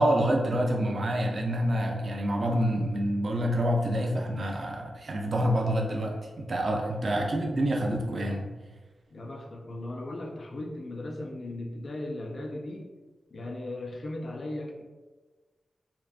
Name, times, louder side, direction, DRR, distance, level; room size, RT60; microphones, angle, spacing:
voice 1, 0.0-8.5, equal, 50° right, 0 dB, 0.3 m, -27 dB
voice 2, 7.0-7.4 9.1-12.9 13.3-14.8, left 1 dB, 55° left, 1 dB, 0.4 m, -37 dB
2.6 x 2.1 x 2.3 m, 1.3 s
wide cardioid pair, 105°, 0 cm